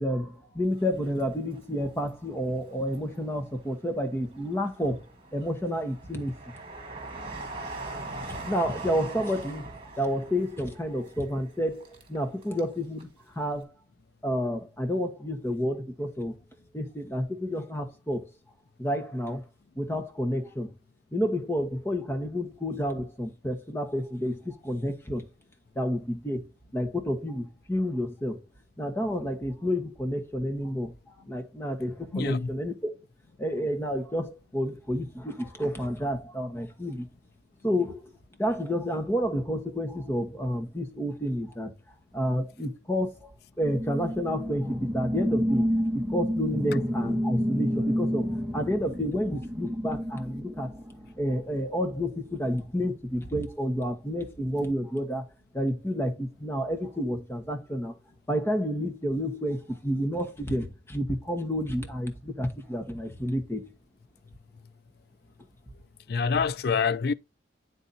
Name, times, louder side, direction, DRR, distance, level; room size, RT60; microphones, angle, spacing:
voice 1, 0.0-5.0 5.3-6.3 8.2-13.1 13.3-13.7 14.2-16.3 16.7-18.3 18.8-19.4 19.8-20.7 21.1-25.3 25.7-28.4 28.8-32.9 33.4-37.1 37.6-38.1 38.4-41.7 42.1-43.3 43.6-50.7 51.2-55.2 55.5-57.9 58.3-63.7, equal, 15° left, 1.2 m, -30 dB
Train, 0.8-2.0 2.5-3.4 4.0-12.7 13.0-13.1, right 2 dB, 30° right, 1.7 m, -41 dB
voice 2, 32.1-32.5 66.1-67.1, left 5 dB, 55° left, 0.4 m, -26 dB
sound 1, 43.6-51.4, equal, 10° right, 1.0 m, -29 dB
9.1 x 4.1 x 4.1 m
head